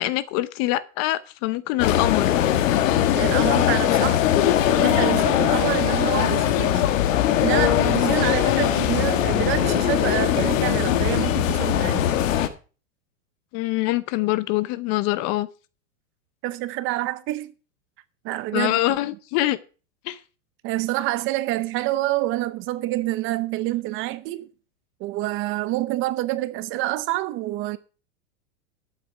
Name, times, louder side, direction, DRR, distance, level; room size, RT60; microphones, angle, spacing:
voice 1, 0.0-2.3 13.5-15.5 18.5-19.6 20.1-20.2, left 17 dB, 35° left, 0.7 m, -24 dB
sound 1, 1.8-12.5, left 11 dB, 70° left, 1.6 m, -21 dB
voice 2, 3.1-4.2 4.7-6.9 7.4-12.1 16.4-17.5 18.2-18.8 20.6-24.5 25.0-27.8, right 17 dB, 30° right, 0.7 m, -27 dB
12.5 x 8.4 x 5.0 m
supercardioid pair, 150°, 41 cm